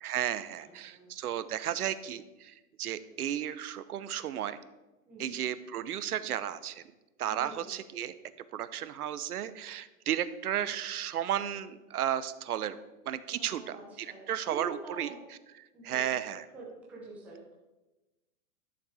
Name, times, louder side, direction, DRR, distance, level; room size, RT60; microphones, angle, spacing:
voice 1, 0.0-4.6 5.2-6.8 7.2-8.1 8.5-12.8 13.1-13.6 14.3-15.1 15.8-16.4, right 10 dB, 80° right, 14 dB, 0.8 m, -33 dB
voice 2, 0.6-1.1 5.0-5.4 7.3-7.9 13.4-15.2 15.7-16.0 16.5-17.6, right 2 dB, 5° right, -5 dB, 0.7 m, -47 dB
11.5 x 6.9 x 4.8 m, 1.1 s
hypercardioid pair, 175°, 45 cm